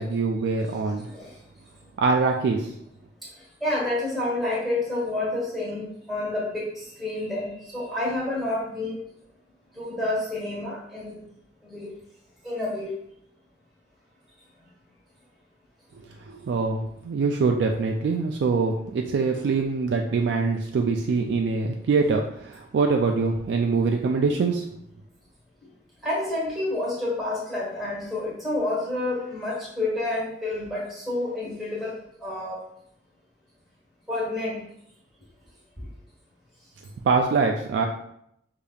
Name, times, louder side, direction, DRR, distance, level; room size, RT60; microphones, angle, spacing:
voice 1, 0.0-1.1 2.0-2.7 15.9-24.7 37.0-37.9, right 4 dB, 70° right, 2 dB, 0.3 m, -24 dB
voice 2, 3.6-9.0 9.7-11.2 11.6-11.9 12.4-12.9 26.0-31.9 32.2-32.6 34.1-34.6 35.8-35.9, left 2 dB, ahead, -7 dB, 1.3 m, -29 dB
4.9 x 2.8 x 2.3 m, 0.74 s
head